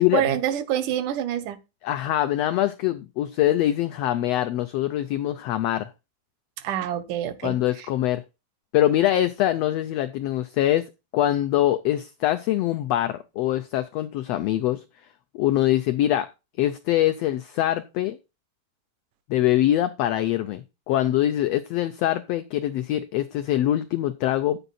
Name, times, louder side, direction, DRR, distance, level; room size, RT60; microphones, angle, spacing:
voice 1, 0.0-1.6 6.6-7.9, right 11 dB, 80° right, 2.5 m, -27 dB
voice 2, 1.8-5.9 7.4-8.2 8.7-10.8 11.1-14.8 15.3-16.3 16.6-18.2 19.3-24.6, left 13 dB, 90° left, 1.4 m, -23 dB
9.8 x 8.0 x 4.1 m
omnidirectional pair, 3.6 m